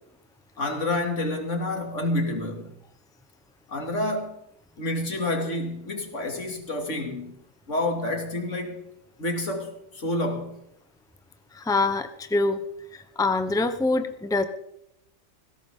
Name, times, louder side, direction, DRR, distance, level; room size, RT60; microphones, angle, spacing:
voice 1, 0.6-2.7 3.7-4.3 4.8-7.3 7.7-8.8 9.2-10.6, left 1 dB, 80° left, 2.9 m, -28 dB
voice 2, 11.5-12.6 12.9-14.4, left 3 dB, 5° left, 0.9 m, -25 dB
19.5 x 16.5 x 3.8 m
omnidirectional pair, 1.3 m